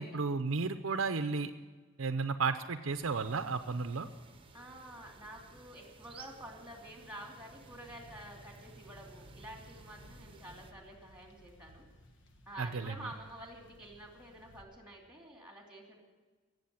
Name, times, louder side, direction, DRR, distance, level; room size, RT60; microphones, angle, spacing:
voice 1, 0.0-1.5 2.0-4.1 12.6-13.1, right 4 dB, 70° right, 9 dB, 0.6 m, -33 dB
sound 1, 2.9-10.7, right 3 dB, 25° right, 1.0 m, -56 dB
voice 2, 4.5-11.9 12.5-16.0, right 1 dB, 5° right, 1 dB, 2.8 m, -49 dB
sound 2, 7.6-14.6, equal, 60° left, 1.4 m, -60 dB
17.5 x 7.8 x 8.8 m, 1.4 s
head